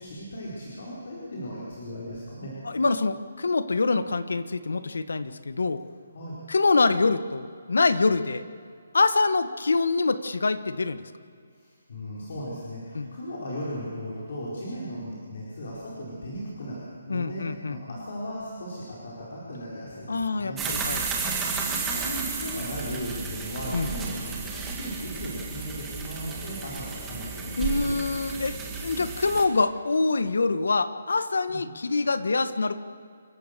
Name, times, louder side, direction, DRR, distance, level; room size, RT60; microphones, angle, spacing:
voice 1, 0.0-2.5 6.1-6.4 11.5-21.1 21.4-28.0 31.5-31.6, equal, 55° left, -6 dB, 4.6 m, -37 dB
voice 2, 2.6-5.8 6.5-8.5 8.9-11.0 12.9-13.1 17.1-17.8 20.1-21.1 23.7-23.9 27.6-32.8, left 3 dB, 85° left, 12 dB, 1.2 m, -25 dB
sound 1, 20.6-29.4, right 5 dB, 10° right, 1.8 m, -33 dB
28.0 x 15.0 x 6.8 m, 2.2 s
hypercardioid pair, 175°, 0 cm